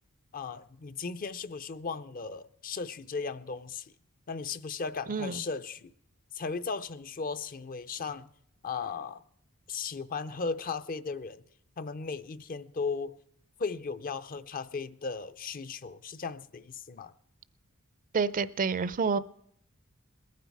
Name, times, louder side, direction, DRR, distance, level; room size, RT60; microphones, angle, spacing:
voice 1, 0.3-3.9 4.3-5.9 6.3-8.3 8.6-9.2 9.7-11.4 11.8-13.2 13.6-17.1, left 4 dB, 40° left, 0.5 m, -36 dB
voice 2, 5.1-5.4 18.1-19.2, right 5 dB, 40° right, 0.4 m, -28 dB
21.0 x 9.4 x 4.7 m
head